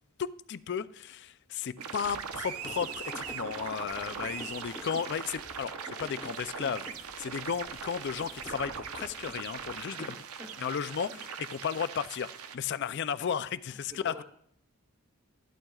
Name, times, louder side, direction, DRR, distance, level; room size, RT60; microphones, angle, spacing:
voice 1, 0.2-6.9 7.2-10.1 10.6-14.2, left 7 dB, 50° left, 0.4 m, -34 dB
sound 1, 1.8-12.6, right 7 dB, 80° right, 0.7 m, -41 dB
sound 2, 2.0-9.7, left 1 dB, 15° left, 0.9 m, -49 dB
voice 2, 9.9-10.7 11.1-11.3 12.9-13.0 13.7-14.2, equal, 25° right, 1.1 m, -49 dB
14.0 x 11.5 x 2.4 m
head